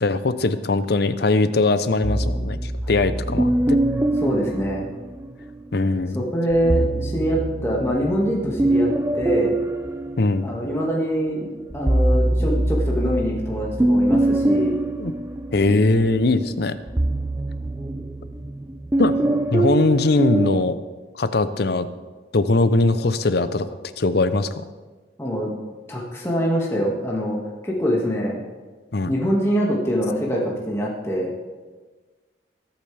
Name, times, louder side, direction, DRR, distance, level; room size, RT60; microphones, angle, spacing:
voice 1, 0.0-3.8 5.7-6.2 10.2-10.5 15.0-15.1 15.5-16.8 19.0-19.1 19.5-20.8 21.1-21.9 22.3-23.7 24.0-24.6 28.9-29.1, left 2 dB, 60° left, 12 dB, 0.7 m, -20 dB
sound 1, 2.0-5.5 6.5-10.9 11.4-20.6, right 1 dB, 15° right, 0.4 m, -23 dB
voice 2, 4.2-4.9 6.1-9.6 10.4-14.8 19.2-19.3 25.2-25.5 25.9-27.4 27.6-28.4 29.1-31.3, equal, 15° left, -3 dB, 1.9 m, -24 dB
21.5 x 8.7 x 3.4 m, 1.3 s
head